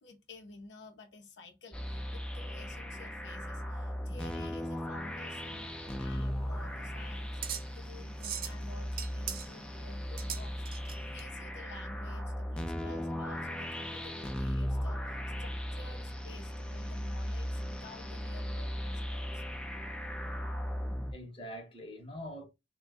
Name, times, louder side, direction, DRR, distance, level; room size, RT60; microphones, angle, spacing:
voice 1, 0.0-19.4, left 2 dB, 75° left, 0.7 m, -52 dB
sound 1, 1.7-21.1, equal, 5° left, 0.4 m, -37 dB
voice 2, 3.9-4.5 7.6-8.0 10.8-11.2 21.1-22.4, equal, 30° left, 0.9 m, -47 dB
sound 2, 6.0-11.2, right 8 dB, 55° right, 0.6 m, -42 dB
3.5 x 2.2 x 3.5 m
head